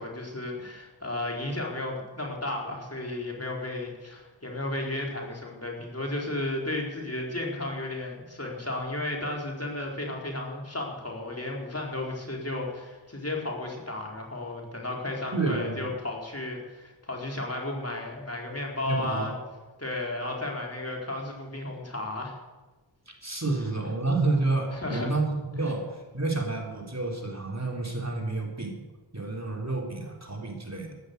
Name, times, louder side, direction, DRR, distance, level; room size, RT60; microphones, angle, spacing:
voice 1, 0.0-19.4 19.8-22.4 24.7-25.1, left 2 dB, 35° left, -1 dB, 4.3 m, -33 dB
voice 2, 15.3-15.9 18.9-19.3 23.1-28.8 29.1-31.0, right 3 dB, 35° right, 0 dB, 3.7 m, -29 dB
14.5 x 12.0 x 8.1 m, 1.2 s
wide cardioid pair, 40°, 44 cm